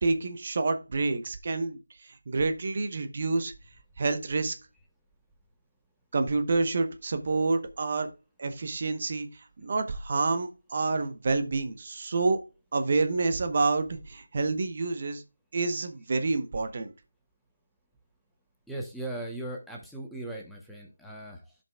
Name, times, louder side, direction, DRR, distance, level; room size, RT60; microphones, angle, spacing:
voice 1, 0.0-3.5 4.0-4.5 6.1-8.1 8.4-9.3 9.6-12.4 12.7-15.2 15.5-16.9, right 3 dB, 45° right, 8 dB, 0.9 m, -28 dB
voice 2, 18.7-21.6, right 1 dB, ahead, -2 dB, 1.0 m, -38 dB
13.5 x 5.3 x 2.3 m, 0.29 s
figure-of-eight pair, 165°, 0 cm